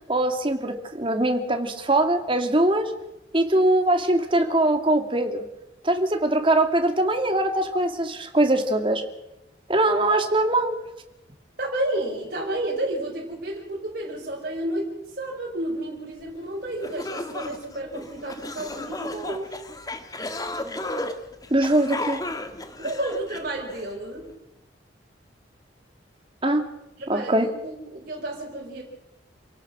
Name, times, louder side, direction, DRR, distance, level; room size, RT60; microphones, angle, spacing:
voice 1, 0.1-2.9 3.3-5.4 5.8-9.0 9.7-10.8 21.5-22.2 26.4-26.7 27.1-27.5, right 1 dB, 30° right, 6 dB, 2.3 m, -22 dB
voice 2, 11.6-19.6 22.8-24.3 27.0-28.8, right 1 dB, 50° right, -3 dB, 5.1 m, -31 dB
sound 1, 16.4-16.5 16.8-23.9, left 2 dB, 20° left, 1.7 m, -34 dB
28.0 x 17.5 x 6.2 m, 0.93 s
head